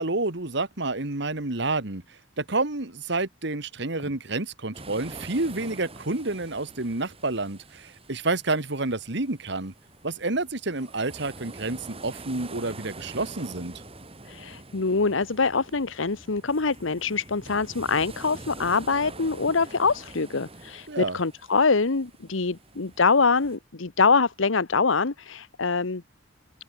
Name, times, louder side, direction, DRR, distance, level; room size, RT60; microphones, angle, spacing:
voice 1, 0.0-9.7 10.0-13.7 20.9-21.2, right 2 dB, 60° right, 2.0 m, -29 dB
sound 1, 4.7-23.6, right 2 dB, 30° right, 4.7 m, -45 dB
voice 2, 14.2-26.0, left 4 dB, 85° left, 1.1 m, -24 dB
open air
head